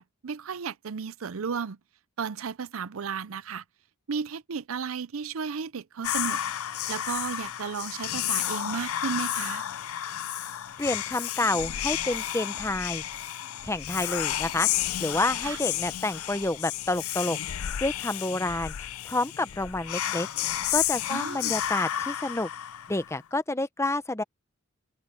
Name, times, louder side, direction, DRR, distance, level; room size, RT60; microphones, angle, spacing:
voice 1, 0.0-1.8 2.2-3.6 4.1-6.4 6.9-9.6 15.4-15.6 21.1-21.6, right 6 dB, 75° right, 0.6 m, -34 dB
Whispering, 6.0-23.2, left 12 dB, 85° left, 0.5 m, -31 dB
voice 2, 10.8-13.0 13.6-17.4 17.8-22.5 22.9-24.2, left 2 dB, 15° left, 0.7 m, -29 dB
open air
head